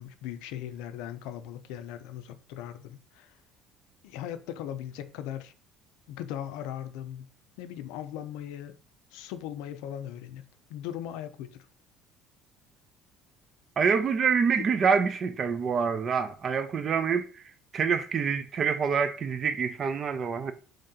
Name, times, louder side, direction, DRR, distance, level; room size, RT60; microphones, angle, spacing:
voice 1, 0.0-3.3 4.0-5.5 6.1-7.3 7.6-8.8 9.1-11.7 14.6-14.7, left 10 dB, 90° left, 0.4 m, -39 dB
voice 2, 13.8-17.3 17.7-20.5, right 6 dB, 30° right, 0.3 m, -26 dB
3.2 x 2.7 x 3.6 m
cardioid pair, 160°, 0 cm